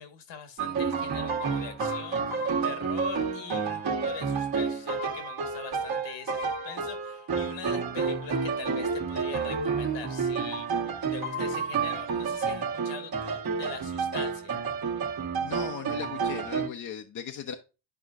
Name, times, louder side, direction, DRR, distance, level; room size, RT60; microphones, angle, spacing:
voice 1, 0.0-10.7 11.1-14.6, left 7 dB, 60° left, 1.6 m, -42 dB
sound 1, 0.6-16.7, right 5 dB, 45° right, 1.6 m, -30 dB
voice 2, 15.4-17.6, left 7 dB, 40° left, 0.9 m, -37 dB
10.0 x 5.0 x 2.5 m
hypercardioid pair, 60°, 49 cm